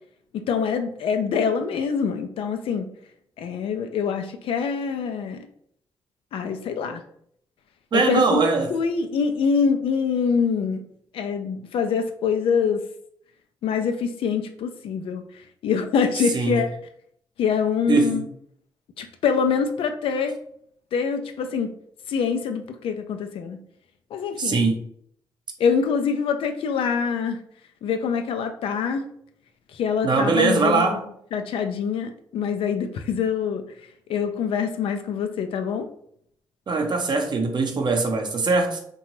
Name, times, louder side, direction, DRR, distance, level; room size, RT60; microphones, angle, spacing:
voice 1, 0.3-2.9 3.4-5.5 6.3-7.0 7.9-8.4 8.7-10.8 11.1-12.8 13.6-16.7 17.4-18.2 19.0-20.4 20.9-21.7 22.1-23.6 24.1-24.7 25.6-27.4 27.8-29.1 29.7-31.0 31.3-33.6 34.1-35.9, left 6 dB, 75° left, 0.4 m, -25 dB
voice 2, 7.9-8.7 16.3-16.6 17.9-18.2 24.4-24.8 30.0-31.0 36.7-38.8, right 3 dB, 55° right, 0.7 m, -21 dB
2.8 x 2.2 x 3.0 m
supercardioid pair, 55°, 9 cm